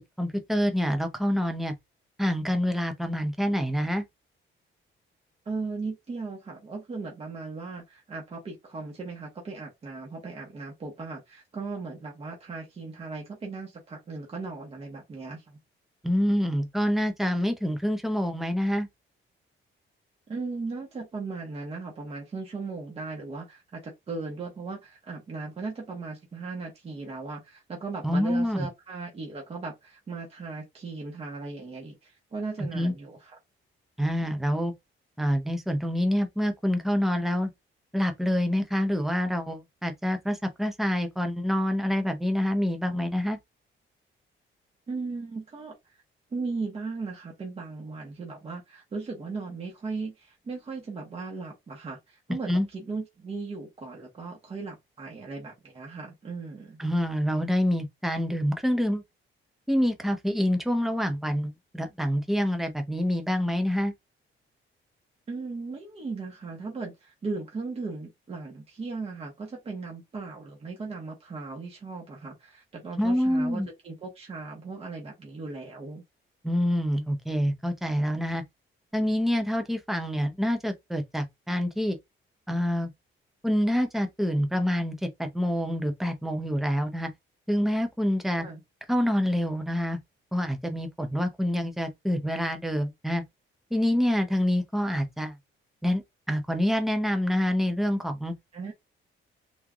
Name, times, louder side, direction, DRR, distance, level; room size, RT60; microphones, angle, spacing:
voice 1, 0.2-1.7 2.2-4.0 16.0-18.9 28.0-28.7 32.7-32.9 34.0-34.7 35.2-37.5 37.9-43.4 52.5-52.7 56.8-59.0 59.7-63.9 73.0-73.7 76.4-78.4 78.9-82.0 82.5-82.9 83.4-87.1 87.5-88.5 88.9-90.0 90.3-93.2 93.7-95.3 95.8-98.3, equal, ahead, 0.6 m, -26 dB
voice 2, 5.5-15.6 20.3-33.4 44.9-45.7 46.3-56.8 65.3-76.0 88.4-88.6 98.5-98.7, right 4 dB, 30° right, 1.1 m, -37 dB
3.5 x 3.1 x 2.4 m
cardioid pair, 175°, 21 cm